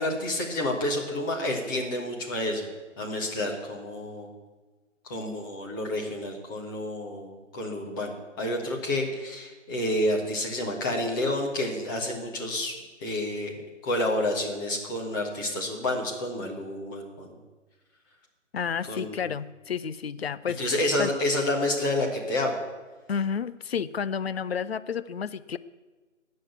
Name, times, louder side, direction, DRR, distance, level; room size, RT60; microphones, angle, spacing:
voice 1, 0.0-2.7 3.0-4.3 5.0-13.5 13.8-17.4 18.8-19.2 20.6-22.6, left 1 dB, 15° left, 0 dB, 1.5 m, -29 dB
voice 2, 18.5-21.1 23.1-25.6, left 7 dB, 55° left, 15 dB, 0.6 m, -31 dB
18.0 x 6.4 x 8.2 m, 1.2 s
figure-of-eight pair, 155°, 38 cm